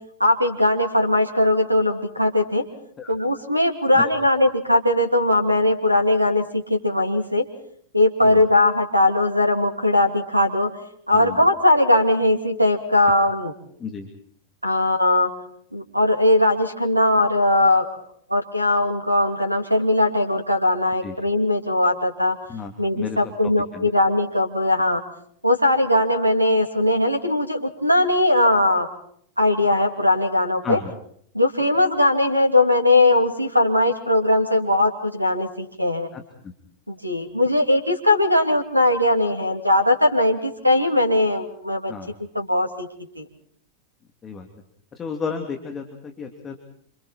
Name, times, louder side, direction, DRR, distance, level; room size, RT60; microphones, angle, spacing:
voice 1, 0.2-2.6 3.1-7.4 7.9-10.7 11.1-13.5 14.6-15.3 15.7-17.9 18.3-22.4 22.8-25.0 25.4-28.9 29.4-30.8 31.3-36.1 36.9-41.9 42.3-42.9 43.2-43.3, left 1 dB, 90° right, 6 dB, 2.7 m, -19 dB
voice 2, 11.1-11.4 13.8-14.1 21.0-21.1 22.5-23.2 23.7-23.9 30.6-30.9 36.1-36.5 41.9-42.1 44.2-44.5 44.9-46.6, left 5 dB, 25° left, 4 dB, 2.9 m, -33 dB
28.5 x 27.0 x 4.4 m, 0.64 s
figure-of-eight pair, 90°, 0 cm